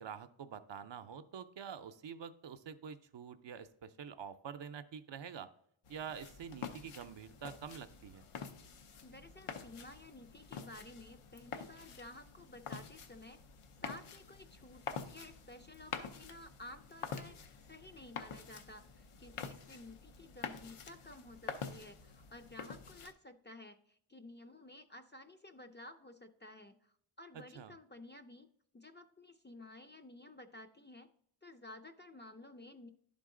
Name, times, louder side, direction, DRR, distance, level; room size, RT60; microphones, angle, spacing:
voice 1, 0.0-5.5 5.9-8.2 27.5-27.7, right 7 dB, 60° right, 10 dB, 0.6 m, -47 dB
sound 1, 5.8-23.1, left 6 dB, 90° left, 0.7 m, -47 dB
voice 2, 9.0-13.4 13.8-31.1 31.4-32.9, left 2 dB, 25° left, 7 dB, 0.4 m, -53 dB
11.0 x 3.9 x 3.7 m, 0.67 s
wide cardioid pair, 85°, 49 cm